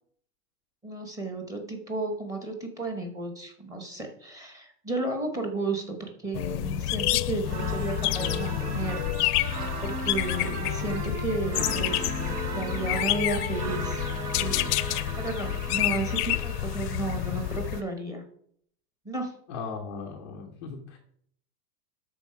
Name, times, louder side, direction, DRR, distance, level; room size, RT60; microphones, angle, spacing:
voice 1, 0.8-12.2 12.5-14.0 14.3-18.2 19.0-19.3, right 3 dB, 10° right, 3 dB, 0.8 m, -33 dB
sound 1, 6.3-17.8, left 15 dB, 75° left, 0.6 m, -29 dB
sound 2, 7.4-17.9, right 4 dB, 75° right, 2.1 m, -37 dB
voice 2, 19.5-21.0, left 5 dB, 20° left, -1 dB, 0.4 m, -38 dB
12.0 x 4.1 x 5.7 m, 0.66 s
supercardioid pair, 170°, 46 cm